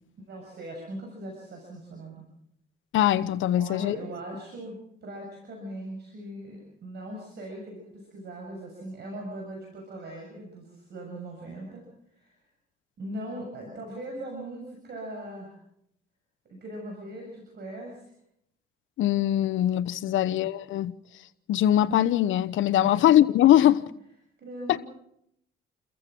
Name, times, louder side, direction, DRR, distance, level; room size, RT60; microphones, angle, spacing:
voice 1, 0.2-2.3 3.6-11.8 12.1-12.4 13.0-15.5 16.5-18.1 20.1-20.4 22.8-23.1 24.4-24.8, right 1 dB, 55° right, 7.1 m, -40 dB
voice 2, 2.9-4.0 19.0-20.9 21.5-23.7 24.7-24.8, left 12 dB, 80° left, 0.9 m, -21 dB
29.5 x 15.0 x 6.1 m
cardioid pair, 90°, 20 cm